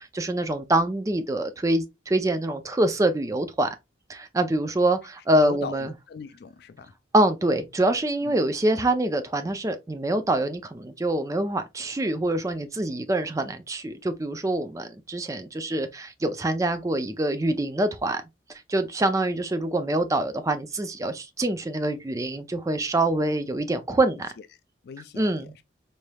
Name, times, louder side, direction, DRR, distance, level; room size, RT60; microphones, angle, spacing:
voice 1, 0.0-3.7 4.1-5.9 7.1-18.2 18.7-24.3 25.2-25.5, right 1 dB, 15° right, 0.4 m, -25 dB
voice 2, 5.3-6.9 8.2-8.3 24.8-25.6, left 5 dB, 60° left, 0.3 m, -39 dB
4.1 x 3.3 x 2.2 m
head